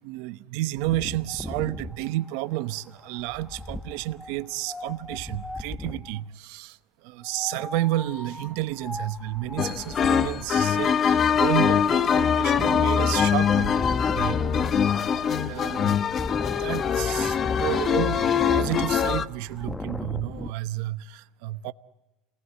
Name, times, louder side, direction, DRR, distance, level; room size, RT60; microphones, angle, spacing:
voice 1, 0.0-13.9 14.1-14.4 14.9-16.0 16.4-21.7, right 16 dB, 75° right, 0.9 m, -31 dB
Wind, 0.8-6.2 7.2-20.5, left 2 dB, 10° left, 1.1 m, -38 dB
sound 1, 9.6-19.3, left 7 dB, 35° left, 0.9 m, -23 dB
28.5 x 19.5 x 8.2 m
supercardioid pair, 110°, 0 cm